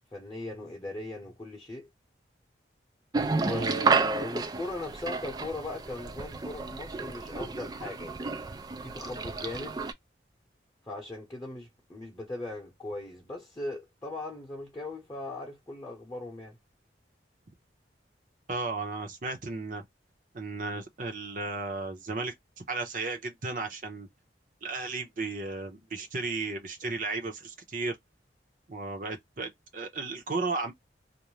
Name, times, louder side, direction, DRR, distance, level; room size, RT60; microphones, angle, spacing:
voice 1, 0.1-1.9 3.3-8.2 8.8-9.8 10.9-16.6, left 2 dB, 20° left, 0.8 m, -39 dB
sound 1, 3.1-9.9, right 4 dB, 20° right, 0.3 m, -31 dB
voice 2, 3.4-3.7 18.5-19.8 20.3-22.3 22.7-24.1 24.6-28.0 28.7-30.7, right 3 dB, 45° right, 0.8 m, -34 dB
2.6 x 2.1 x 3.1 m
head